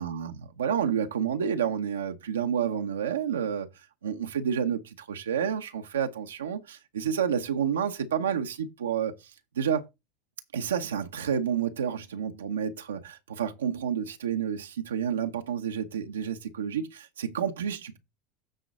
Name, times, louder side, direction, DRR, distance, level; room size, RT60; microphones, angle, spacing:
voice 1, 0.0-3.7 4.0-9.1 9.6-9.8 10.5-18.0, right 8 dB, 85° right, 0.9 m, -29 dB
9.0 x 3.9 x 5.3 m
hypercardioid pair, 85°, 0 cm